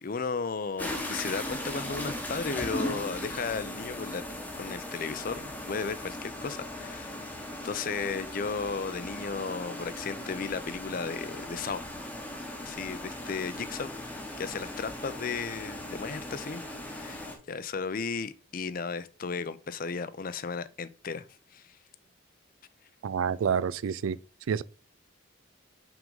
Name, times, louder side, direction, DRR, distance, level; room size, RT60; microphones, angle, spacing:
voice 1, 0.0-4.2 4.5-7.2 7.6-11.8 12.6-13.9 14.4-21.3 21.5-21.8, left 5 dB, 45° left, 0.5 m, -35 dB
sound 1, 0.8-17.4, left 1 dB, 10° left, 1.0 m, -38 dB
voice 2, 23.0-24.2 24.5-24.6, right 7 dB, 85° right, 0.4 m, -28 dB
6.0 x 3.6 x 5.3 m
head